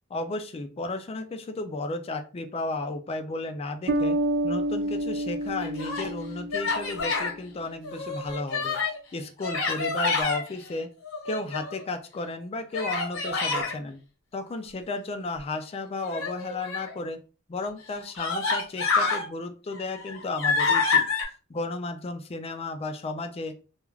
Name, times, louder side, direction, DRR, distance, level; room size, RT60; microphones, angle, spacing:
voice 1, 0.1-4.2 4.4-8.8 9.1-10.9 11.2-14.0 14.3-17.2 17.5-21.0 21.5-23.5, left 2 dB, 30° left, 7 dB, 0.3 m, -33 dB
Bass guitar, 3.9-7.4, right 1 dB, 55° right, 0.4 m, -29 dB
Human voice, 5.5-6.1 6.5-7.3 7.8-9.0 9.4-10.4 11.0-11.8 12.7-13.7 16.0-16.9 17.6-17.7 18.2-19.2 19.7-21.2, left 4 dB, 70° left, 0.9 m, -27 dB
2.4 x 2.3 x 3.1 m, 0.35 s
head